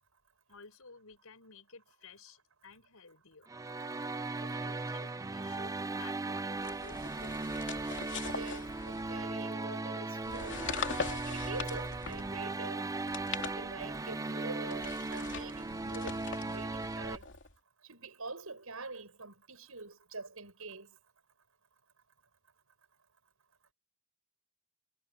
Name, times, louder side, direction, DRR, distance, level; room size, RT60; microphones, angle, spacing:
voice 1, 0.5-3.5 4.3-7.4, left 4 dB, 85° left, 5.3 m, -54 dB
sound 1, 3.5-17.2, right 2 dB, 15° right, 0.5 m, -37 dB
sound 2, 6.6-9.4 10.2-12.4 12.9-14.1 14.7-17.5, left 5 dB, 60° left, 3.0 m, -42 dB
voice 2, 8.2-10.6 11.3-12.9 13.5-17.3 17.8-20.9, right 3 dB, 80° right, 6.8 m, -45 dB
head